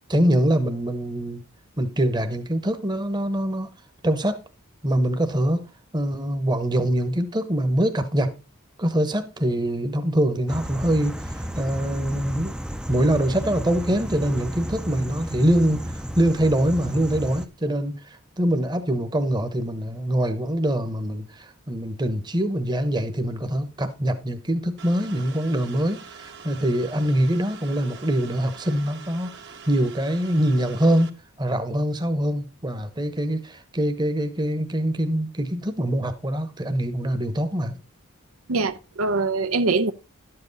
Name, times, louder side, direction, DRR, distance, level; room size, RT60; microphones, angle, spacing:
voice 1, 0.1-1.4 1.8-3.7 4.0-4.4 4.8-5.6 5.9-8.3 8.8-12.6 12.9-15.8 16.2-29.3 29.7-37.8, right 1 dB, 20° right, 1.0 m, -24 dB
sound 1, 10.5-17.5, equal, 5° right, 0.5 m, -33 dB
sound 2, 24.8-31.1, right 6 dB, 55° right, 1.3 m, -44 dB
voice 2, 38.5-39.9, right 3 dB, 80° right, 0.7 m, -23 dB
11.5 x 7.8 x 4.1 m
head